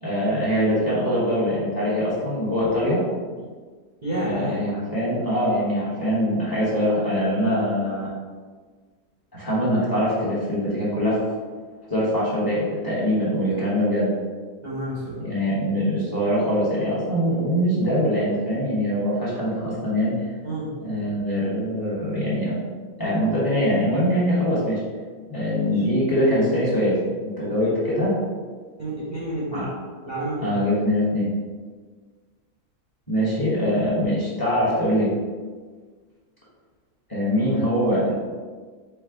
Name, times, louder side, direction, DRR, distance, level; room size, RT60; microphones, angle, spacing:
voice 1, 0.0-3.0 4.2-8.1 9.3-11.2 11.9-14.1 15.2-20.3 20.8-22.6 23.0-24.8 25.3-28.1 29.5-29.7 30.4-31.3 33.1-35.1 37.1-38.1, equal, 15° left, -8 dB, 1.1 m, -23 dB
voice 2, 4.0-4.6 14.6-15.2 20.4-20.8 25.5-25.9 27.4-27.7 28.8-29.7 30.0-30.6, right 1 dB, 40° right, -8 dB, 0.7 m, -30 dB
4.6 x 2.4 x 3.7 m, 1.5 s
omnidirectional pair, 1.7 m